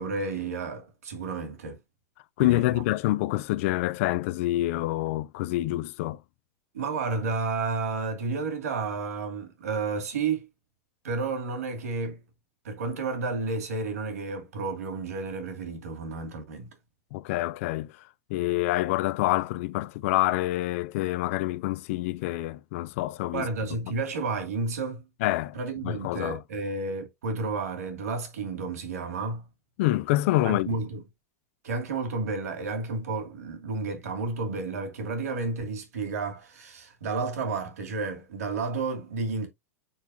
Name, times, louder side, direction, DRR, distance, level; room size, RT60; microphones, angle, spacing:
voice 1, 0.0-1.8 2.4-2.8 6.7-10.5 11.0-12.2 12.6-16.7 23.3-25.1 25.5-29.4 30.4-31.0 31.6-39.5, right 3 dB, 75° right, 2.6 m, -31 dB
voice 2, 2.4-6.2 17.1-17.9 18.3-23.5 25.2-25.6 25.8-26.4 29.8-30.8, left 17 dB, 60° left, 0.6 m, -27 dB
8.8 x 4.5 x 2.8 m
hypercardioid pair, 105°, 8 cm